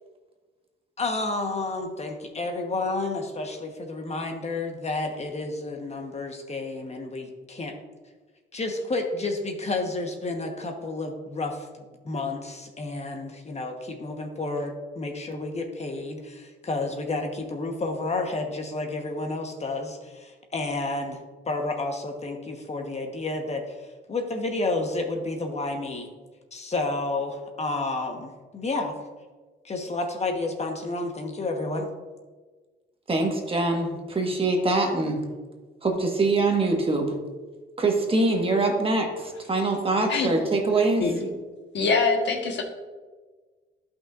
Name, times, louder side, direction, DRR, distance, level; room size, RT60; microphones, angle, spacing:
voice 1, 1.0-7.8 8.5-26.1 26.5-28.9 29.6-31.9, left 2 dB, 35° left, 3 dB, 1.2 m, -31 dB
voice 2, 33.1-35.2 35.8-37.1 37.8-41.0, right 2 dB, 30° right, 2 dB, 1.4 m, -24 dB
voice 3, 41.7-42.6, left 4 dB, 65° left, 2 dB, 1.3 m, -24 dB
12.0 x 5.7 x 2.5 m, 1.3 s
cardioid pair, 90°, 20 cm